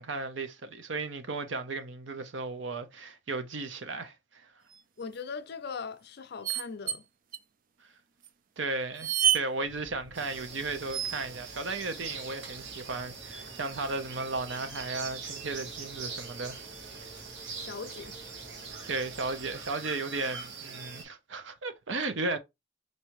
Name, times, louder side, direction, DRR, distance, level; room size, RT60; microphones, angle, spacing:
voice 1, 0.0-4.5 8.6-16.6 17.0-17.1 18.9-22.4, right 3 dB, 85° right, 0.7 m, -35 dB
sound 1, 4.7-5.0 6.4-7.0 7.3-7.4 8.2-8.3 8.9-9.5 10.9-11.4 13.4-13.9 15.5-15.6 15.8-15.9 16.6-17.4 17.8-17.9, right 10 dB, 50° right, 0.4 m, -30 dB
voice 2, 5.0-7.1 17.6-18.2, left 5 dB, 60° left, 0.5 m, -40 dB
sound 2, 9.6-19.7, left 1 dB, 30° right, 1.4 m, -55 dB
sound 3, 10.1-21.0, right 5 dB, 70° right, 1.2 m, -43 dB
4.6 x 2.7 x 3.0 m
head